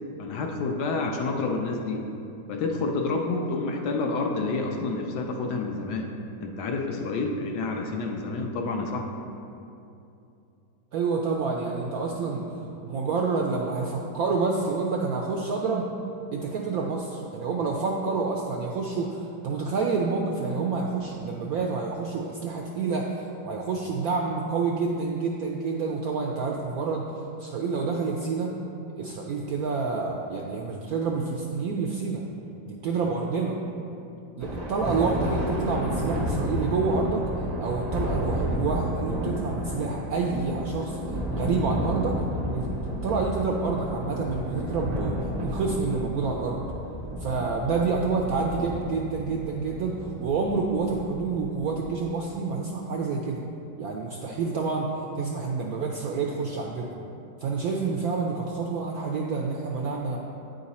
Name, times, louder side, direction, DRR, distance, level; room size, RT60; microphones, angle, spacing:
voice 1, 0.2-2.0 2.5-6.1 6.4-9.0, left 3 dB, 70° left, 2 dB, 1.1 m, -29 dB
voice 2, 10.9-12.4 12.8-15.8 16.3-27.1 27.4-28.5 29.0-32.2 32.6-33.6 34.4-37.2 37.6-42.2 42.5-42.7 43.0-45.2 45.4-46.6 47.2-53.4 53.8-56.9 57.4-60.2, right 4 dB, 75° right, 0 dB, 0.8 m, -28 dB
Thunder, 34.4-52.1, equal, 55° right, 0.4 m, -31 dB
9.3 x 3.9 x 4.1 m, 2.7 s
omnidirectional pair, 2.0 m